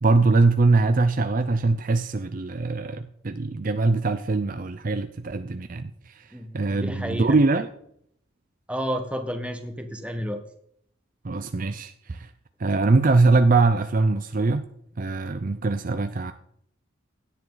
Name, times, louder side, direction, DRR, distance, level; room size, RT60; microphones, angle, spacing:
voice 1, 0.0-6.2 6.5-7.7 11.2-12.3 12.6-14.7 15.0-16.3, right 3 dB, 40° right, 9 dB, 0.5 m, -22 dB
voice 2, 6.3-7.4 8.7-10.4, equal, 5° right, 5 dB, 1.3 m, -31 dB
16.5 x 10.5 x 3.9 m, 0.71 s
head